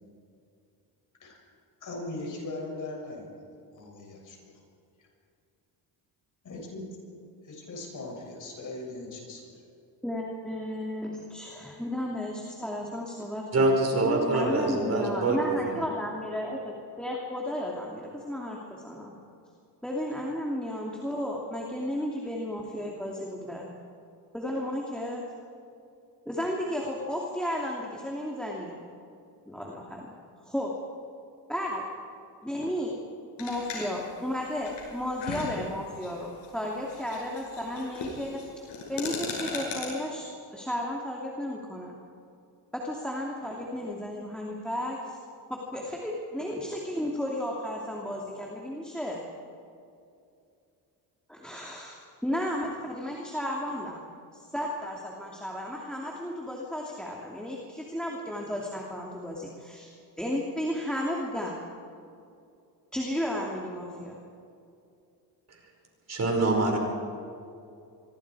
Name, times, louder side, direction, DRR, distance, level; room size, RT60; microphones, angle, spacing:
voice 1, 1.8-3.3 3.7-4.5 6.4-6.9 7.4-9.4, left 2 dB, 45° left, -1 dB, 7.4 m, -39 dB
voice 2, 10.0-19.1 19.8-23.7 24.3-25.2 26.3-28.7 29.5-30.1 30.4-30.7 31.5-31.8 32.4-32.9 33.4-38.4 38.9-40.3 40.5-42.0 42.7-45.2 45.5-49.2 51.3-54.0 54.3-59.9 60.2-61.6 62.9-64.1, left 1 dB, ahead, -2 dB, 2.7 m, -33 dB
voice 3, 13.5-15.5 66.1-66.8, right 2 dB, 40° right, 1 dB, 5.3 m, -25 dB
sound 1, 33.4-39.8, left 4 dB, 85° left, 7.8 m, -38 dB
25.5 x 24.5 x 4.9 m, 2.5 s
cardioid pair, 125°, 41 cm